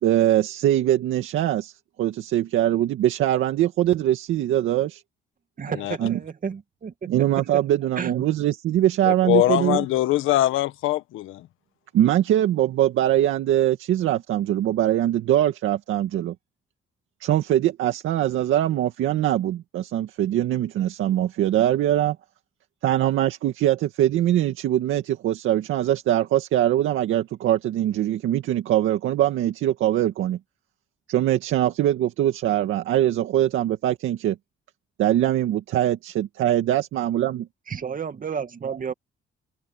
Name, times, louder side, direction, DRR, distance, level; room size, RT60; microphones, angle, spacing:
voice 1, 0.0-1.7 2.0-5.0 6.0-6.2 7.1-9.8 11.9-16.3 17.2-22.2 22.8-30.4 31.1-34.4 35.0-37.5, right 12 dB, 85° right, 2.1 m, -22 dB
voice 2, 5.6-7.4 8.0-8.2 9.6-9.8 37.7-38.9, right 6 dB, 45° right, 2.3 m, -31 dB
voice 3, 9.1-11.4, left 14 dB, 90° left, 1.5 m, -22 dB
cardioid pair, 90°, 20 cm